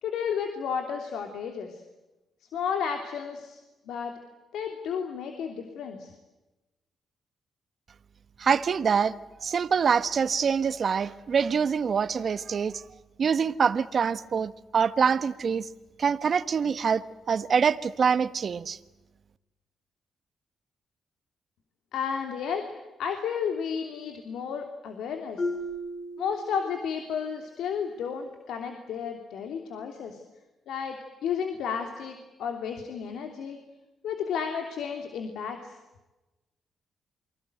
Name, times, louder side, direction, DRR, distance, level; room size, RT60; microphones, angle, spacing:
voice 1, 0.0-1.8 2.5-3.6 3.9-4.1 4.5-6.1 21.9-22.7 23.0-25.5 26.2-30.2 30.7-33.6 34.0-35.7, left 7 dB, 80° left, 3.1 m, -32 dB
voice 2, 8.4-9.1 9.4-12.8 13.2-15.7 16.0-18.8, right 6 dB, 55° right, 1.3 m, -25 dB
Marimba xylophone, 25.4-27.1, left 1 dB, 40° left, 5.8 m, -35 dB
29.0 x 23.0 x 8.0 m
cardioid pair, 75°, 0 cm